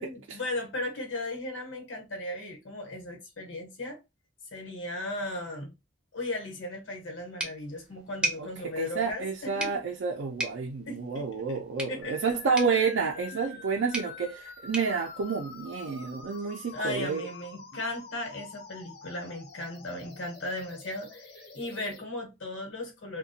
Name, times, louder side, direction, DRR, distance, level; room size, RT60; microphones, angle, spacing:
voice 1, 0.0-4.0 4.5-5.7 6.1-9.8 10.9-11.6 11.9-12.2 13.3-13.6 16.7-23.2, left 1 dB, 75° left, 1.0 m, -36 dB
sound 1, 7.4-16.1, right 1 dB, 5° right, 0.5 m, -39 dB
voice 2, 8.6-17.3, right 5 dB, 75° right, 0.4 m, -29 dB
sound 2, 12.0-22.0, left 4 dB, 50° left, 0.6 m, -47 dB
2.4 x 2.2 x 2.6 m
head